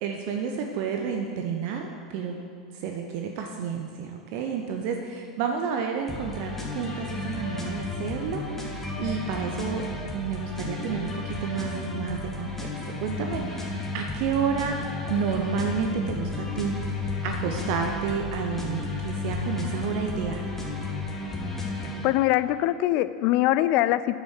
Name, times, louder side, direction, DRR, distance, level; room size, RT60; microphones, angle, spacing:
voice 1, 0.0-2.4 2.7-9.8 10.1-12.7 13.0-20.4, right 6 dB, 50° right, 3 dB, 0.9 m, -30 dB
sound 1, 6.1-22.1, left 3 dB, 10° left, 1.9 m, -32 dB
voice 2, 22.0-24.2, left 15 dB, 45° left, 14 dB, 0.5 m, -22 dB
9.7 x 8.7 x 6.4 m, 2.4 s
figure-of-eight pair, 85°, 3 cm